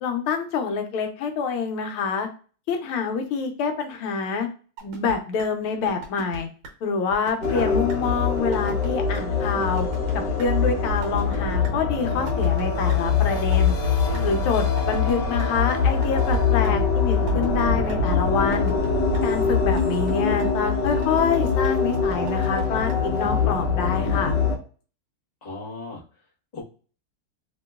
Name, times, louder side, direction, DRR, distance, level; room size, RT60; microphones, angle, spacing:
voice 1, 0.0-2.3 2.7-4.5 4.8-6.5 6.8-9.9 10.1-13.8 14.2-18.7 19.2-24.3, left 5 dB, 80° left, 5 dB, 1.5 m, -26 dB
sound 1, 4.8-5.1 5.4-5.5 5.9-6.4 6.6-6.7 7.1-7.6 7.9-8.0 8.4-8.9 9.1-9.2 9.6-10.1 10.4-10.5 10.9-11.4 11.6-11.7 12.1-12.6 12.9-13.0 13.4-14.2 14.6-15.5 15.9-16.4 16.6-16.7 17.1-17.6 17.9-18.0 18.4-18.9 19.1-19.2 19.6-20.1 20.4-20.5 20.9-21.4 21.6-21.7 22.1-22.6 22.9-23.0 23.4-23.5, right 2 dB, 70° right, 1.5 m, -37 dB
sound 2, 7.4-24.6, left 5 dB, 65° left, 1.2 m, -23 dB
voice 2, 14.0-14.4 25.4-26.0 26.5-26.6, left 3 dB, 40° left, -4 dB, 0.5 m, -35 dB
3.3 x 2.9 x 2.2 m, 0.38 s
omnidirectional pair, 2.4 m